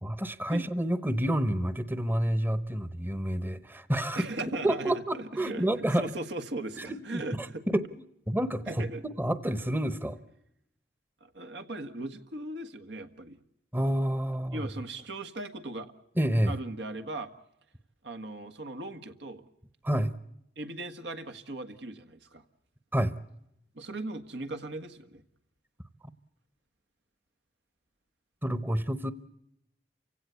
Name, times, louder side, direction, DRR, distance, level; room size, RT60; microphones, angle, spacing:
voice 1, 0.0-4.3 4.6-6.1 6.9-7.5 7.7-8.9 9.2-10.2 13.7-14.7 16.2-16.5 19.8-20.1 22.9-23.1 28.4-29.1, right 1 dB, 10° right, 14 dB, 0.9 m, -29 dB
voice 2, 4.1-5.6 5.9-7.6 8.7-9.0 11.2-13.4 14.5-15.9 16.5-17.3 18.0-19.4 20.5-22.4 23.7-25.2, right 2 dB, 85° right, 7 dB, 1.7 m, -38 dB
29.0 x 16.5 x 8.2 m, 0.81 s
head